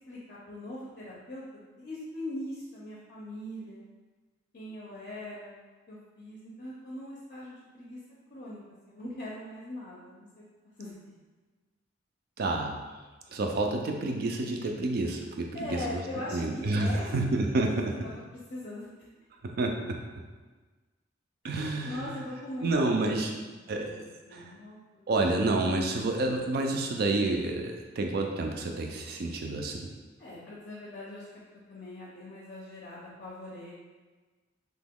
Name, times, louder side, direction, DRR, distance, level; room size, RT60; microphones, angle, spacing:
voice 1, 0.1-3.8 4.5-5.6 5.9-8.0 8.3-10.4 10.8-11.1 15.5-17.1 17.4-17.8 18.0-18.2 18.5-18.9 21.5-21.6 21.8-25.2 30.2-31.2 31.7-33.7, left 1 dB, 45° left, -6 dB, 0.5 m, -41 dB
voice 2, 12.4-12.8 13.3-16.0 16.3-17.9 19.4-20.0 21.4-22.2 22.6-23.3 23.7-23.9 24.3-24.5 25.1-29.9, right 2 dB, 55° right, 3 dB, 0.4 m, -29 dB
3.0 x 2.2 x 3.5 m, 1.3 s
head